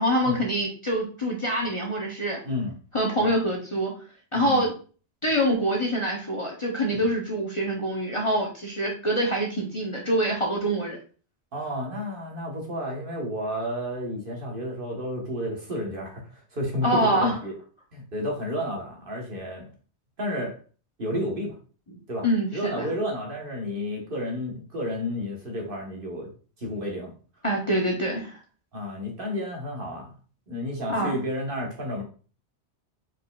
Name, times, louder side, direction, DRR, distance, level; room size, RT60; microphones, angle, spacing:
voice 1, 0.0-2.4 2.9-3.9 4.3-4.7 5.2-11.0 16.8-17.4 22.2-22.9 27.4-28.4 30.9-31.2, equal, 30° left, -2 dB, 0.8 m, -25 dB
voice 2, 4.3-4.7 6.9-7.0 11.5-17.5 17.9-19.7 20.2-20.5 21.0-21.5 22.1-22.3 22.5-26.3 26.6-27.1 28.7-30.1 30.5-32.0, equal, 50° right, -1 dB, 1.3 m, -31 dB
4.8 x 4.2 x 2.3 m, 0.38 s
omnidirectional pair, 1.2 m